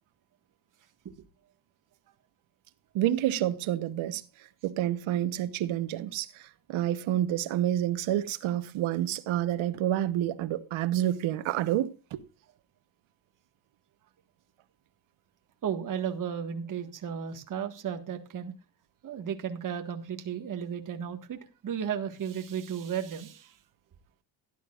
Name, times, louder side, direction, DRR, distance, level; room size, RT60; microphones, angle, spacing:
voice 1, 2.9-4.2 4.6-12.2, right 12 dB, 85° right, 1.1 m, -29 dB
voice 2, 15.6-18.5 19.0-23.5, right 8 dB, 40° right, 1.7 m, -34 dB
17.0 x 11.0 x 2.5 m
cardioid pair, 150°, 47 cm